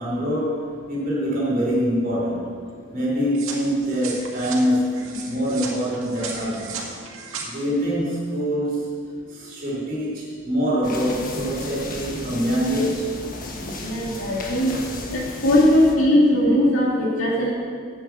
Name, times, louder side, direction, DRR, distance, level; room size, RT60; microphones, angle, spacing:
voice 1, 0.0-2.5 2.9-6.9 7.4-8.9 9.3-13.1, equal, 40° right, -6 dB, 3.7 m, -24 dB
sound 1, 3.3-7.5, right 5 dB, 85° right, 2.1 m, -35 dB
sound 2, 10.8-15.9, left 2 dB, 40° left, 1.4 m, -34 dB
voice 2, 13.8-14.8 15.1-17.5, left 1 dB, 80° left, -3 dB, 2.5 m, -19 dB
9.1 x 9.1 x 8.1 m, 2.1 s
head